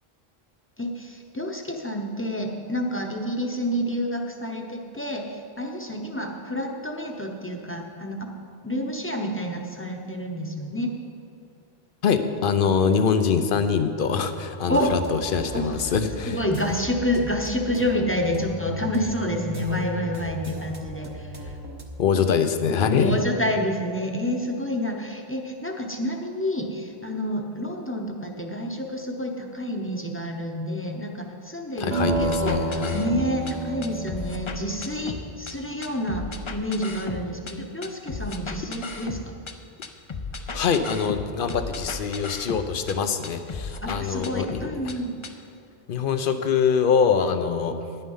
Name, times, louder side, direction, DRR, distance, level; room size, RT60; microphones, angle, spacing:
voice 1, 0.8-8.3 8.6-11.0 14.7-15.0 15.5-15.8 16.3-21.5 23.0-39.2 43.8-45.2, equal, 15° left, 1 dB, 0.9 m, -29 dB
voice 2, 12.0-16.4 22.0-23.2 31.8-33.0 40.5-44.6 45.9-47.8, left 6 dB, 60° left, 9 dB, 0.9 m, -24 dB
sound 1, 14.7-21.9, right 1 dB, 25° right, 0.8 m, -37 dB
sound 2, 31.9-36.2, right 2 dB, 85° right, 2.4 m, -30 dB
sound 3, 32.1-33.5 33.8-35.5 35.8-37.5 37.8-39.5 39.8-43.0 43.2-45.0 45.2-45.3, left 4 dB, 35° left, 0.6 m, -35 dB
10.5 x 9.5 x 5.6 m, 2.5 s
omnidirectional pair, 1.0 m